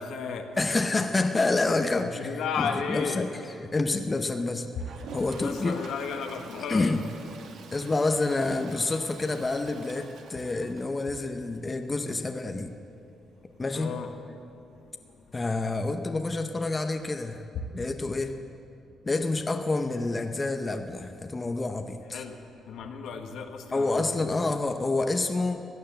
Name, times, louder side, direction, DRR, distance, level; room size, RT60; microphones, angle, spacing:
voice 1, 0.0-0.5 2.0-3.3 4.8-4.9 5.3-6.9 13.7-14.1 22.1-22.3 22.7-24.6, left 6 dB, 75° left, 4 dB, 1.3 m, -34 dB
voice 2, 0.6-3.3 3.6-4.7 5.1-5.8 6.7-7.0 7.7-12.7 13.6-13.9 15.3-17.5 17.7-18.4 19.0-22.2 23.7-25.6, left 3 dB, 25° left, 6 dB, 0.8 m, -28 dB
Toilet flush, 4.7-11.5 11.8-11.9 12.1-12.2 12.4-12.5 15.1-15.2 16.5-16.6, right 5 dB, 75° right, 1.3 m, -47 dB
15.5 x 9.7 x 7.6 m, 2.6 s
cardioid pair, 90°, 0 cm